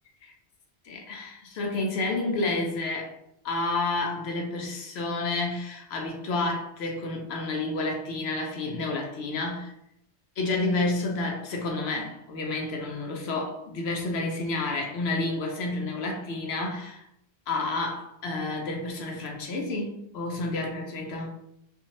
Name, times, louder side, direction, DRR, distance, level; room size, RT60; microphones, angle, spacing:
voice 1, 0.8-3.2 3.4-9.7 10.4-17.0 17.5-21.3, left 2 dB, 70° left, 1 dB, 0.8 m, -30 dB
2.6 x 2.4 x 2.8 m, 0.77 s
omnidirectional pair, 1.2 m